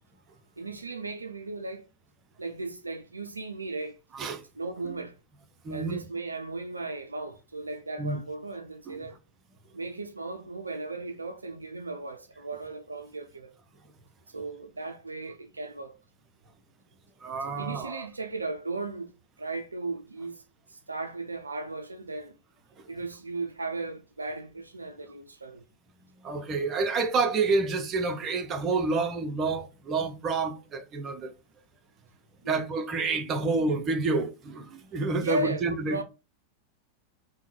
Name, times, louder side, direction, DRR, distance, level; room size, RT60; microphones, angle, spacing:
voice 1, 0.6-1.9 2.4-4.0 4.6-5.2 5.7-9.2 9.7-13.5 14.3-16.0 17.4-20.4 20.7-22.3 22.9-25.6 32.4-32.7 35.2-36.0, right 2 dB, 80° right, 0.3 m, -36 dB
voice 2, 5.6-6.0 8.0-8.2 8.9-9.0 17.2-18.1 26.2-31.3 32.5-36.0, right 4 dB, 25° right, 0.6 m, -28 dB
3.6 x 2.1 x 3.0 m
figure-of-eight pair, 90°, 0 cm